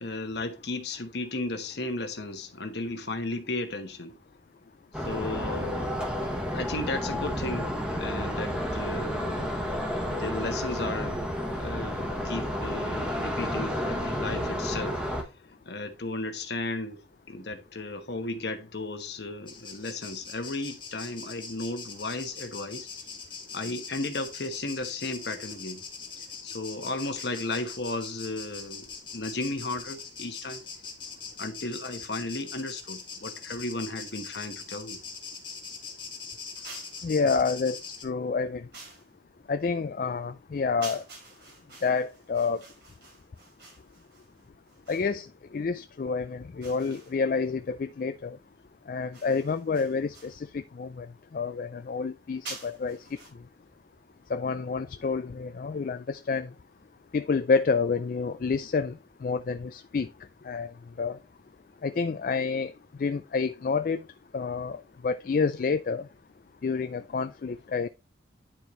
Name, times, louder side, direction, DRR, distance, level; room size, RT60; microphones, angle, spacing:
voice 1, 0.0-4.2 5.0-6.0 6.5-7.7 7.9-9.5 10.1-11.2 11.5-15.0 15.7-17.0 17.3-22.9 23.5-25.8 26.4-28.9 29.1-30.6 31.4-35.0, left 2 dB, 65° left, 1.1 m, -34 dB
sound 1, 4.9-15.2, equal, 5° right, 1.2 m, -31 dB
sound 2, 19.5-38.0, left 5 dB, 25° left, 1.6 m, -42 dB
sound 3, 36.6-37.1 38.7-39.1 40.8-45.2 46.6-47.4 49.1-50.4 52.4-53.3, right 3 dB, 65° right, 3.8 m, -47 dB
voice 2, 37.0-38.6 39.5-41.0 41.8-42.6 44.9-45.3 45.5-48.4 48.9-51.1 51.3-53.0 54.3-56.5 57.1-58.9 59.2-60.1 60.4-60.7 61.0-61.2 61.8-62.7 63.0-64.0 64.3-66.1 66.6-67.9, left 4 dB, 45° left, 0.3 m, -28 dB
10.0 x 4.5 x 3.1 m
head